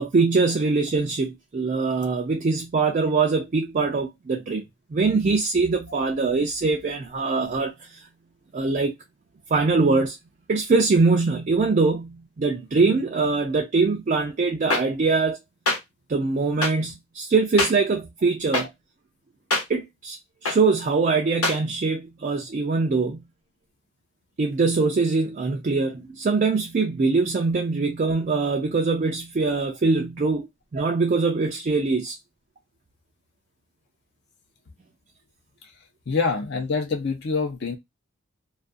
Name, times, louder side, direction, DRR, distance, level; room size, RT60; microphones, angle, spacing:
voice 1, 0.0-4.6 4.9-8.0 8.5-8.9 9.5-10.2 10.5-15.4 16.1-18.7 19.7-20.2 20.4-23.3 24.4-30.5 30.7-32.2, right 4 dB, 35° right, 0.3 m, -23 dB
sound 1, 14.7-14.8 15.7-15.8 16.6-16.7 17.6-17.7 18.5-18.6 19.5-19.6 20.4-20.6 21.4-21.6, left 2 dB, 90° left, 1.0 m, -22 dB
voice 2, 36.1-37.8, left 4 dB, 50° left, 0.5 m, -25 dB
2.3 x 2.2 x 2.5 m
head